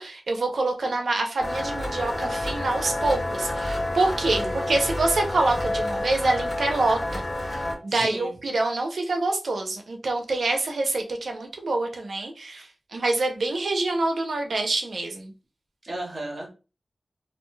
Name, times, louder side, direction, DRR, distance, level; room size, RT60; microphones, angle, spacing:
voice 1, 0.0-7.2 7.5-12.7 12.9-15.3, right 2 dB, 80° right, 3 dB, 0.6 m, -26 dB
sound 1, 1.4-7.7, left 1 dB, 40° left, 1.3 m, -29 dB
voice 2, 4.3-5.2 7.9-8.3 15.8-16.5, right 1 dB, 45° right, -1 dB, 0.9 m, -36 dB
2.5 x 2.2 x 3.1 m, 0.32 s
wide cardioid pair, 105°, 0 cm